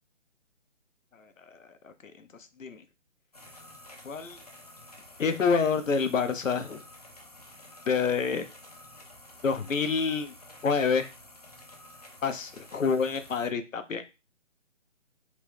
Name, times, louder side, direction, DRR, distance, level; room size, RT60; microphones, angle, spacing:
sound 1, 3.3-13.5, left 1 dB, 30° left, 0.5 m, -50 dB
voice 1, 4.0-4.4 5.2-6.8 7.9-8.5 9.4-10.3 10.6-11.1 12.2-14.0, left 5 dB, 80° left, 9 dB, 0.7 m, -27 dB
2.9 x 2.3 x 3.2 m, 0.28 s
figure-of-eight pair, 155°, 38 cm